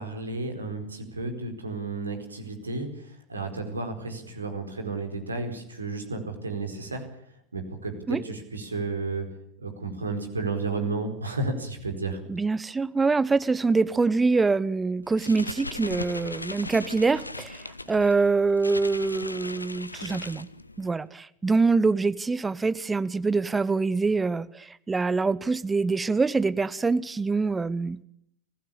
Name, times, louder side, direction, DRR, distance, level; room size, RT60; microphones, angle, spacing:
voice 1, 0.0-7.0 7.5-9.2 9.6-12.2, right 3 dB, 75° right, 5 dB, 4.6 m, -32 dB
voice 2, 12.3-20.5 20.8-28.0, right 4 dB, 10° right, 16 dB, 0.9 m, -25 dB
sound 1, 15.0-21.0, left 2 dB, 85° left, 0.9 m, -38 dB
23.5 x 16.0 x 8.7 m, 0.71 s
figure-of-eight pair, 90°, 0 cm